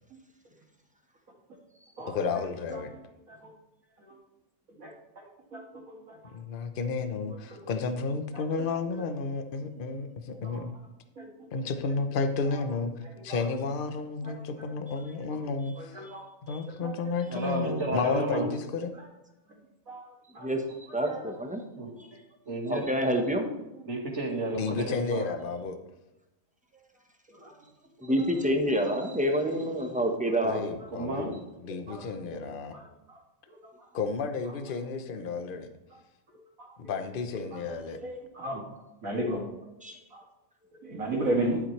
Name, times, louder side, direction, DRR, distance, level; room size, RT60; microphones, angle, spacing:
voice 1, 2.1-2.9 6.3-10.7 11.5-16.0 16.4-18.9 24.5-25.8 30.4-32.8 33.9-35.7 36.9-38.0, left 4 dB, 45° left, 8 dB, 0.9 m, -32 dB
voice 2, 15.8-16.3 16.8-16.9 19.9-20.1 20.3-20.5 21.1-21.2 23.0-23.1 27.4-27.5 31.9-32.1 32.4-32.8 33.1-33.2 37.5-37.6 38.0-38.6 39.0-39.4 40.1-40.2 40.9-41.6, right 1 dB, 65° right, -1 dB, 2.5 m, -33 dB
voice 3, 17.3-18.5 21.5-22.1 22.5-22.9 23.8-25.3 28.0-28.2 28.9-29.2 30.9-31.4, right 2 dB, 50° right, -2 dB, 2.4 m, -33 dB
voice 4, 20.9-21.6 22.7-23.5 28.0-30.7 39.8-40.0, equal, 5° right, 3 dB, 1.0 m, -27 dB
12.5 x 7.7 x 3.3 m, 0.94 s
omnidirectional pair, 1.5 m